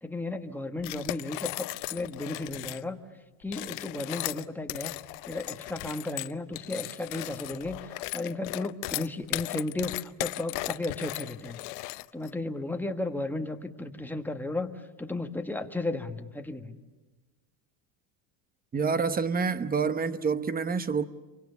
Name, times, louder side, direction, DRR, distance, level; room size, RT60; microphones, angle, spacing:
voice 1, 0.0-3.0 3.4-4.9 5.2-11.6 12.1-14.7 15.0-16.8, left 2 dB, 5° left, 1.6 m, -34 dB
sound 1, 0.8-2.8 3.4-12.3, left 23 dB, 75° left, 0.8 m, -36 dB
voice 2, 18.7-21.0, right 5 dB, 20° right, 1.0 m, -27 dB
28.5 x 24.5 x 7.0 m
supercardioid pair, 130°, 47 cm